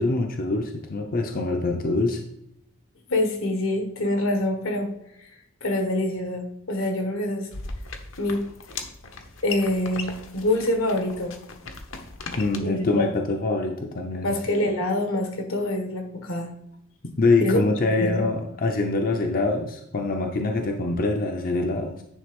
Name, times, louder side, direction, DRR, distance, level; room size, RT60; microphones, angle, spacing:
voice 1, 0.0-2.2 12.4-14.7 17.0-22.0, left 3 dB, 45° left, 3 dB, 0.6 m, -25 dB
voice 2, 3.1-4.9 5.6-7.5 8.2-8.4 9.4-11.4 12.6-13.0 14.2-16.5 17.4-18.3, left 1 dB, 80° left, 4 dB, 1.5 m, -25 dB
sound 1, 7.5-12.6, left 4 dB, 65° left, 0.9 m, -38 dB
9.8 x 3.5 x 5.2 m, 0.78 s
head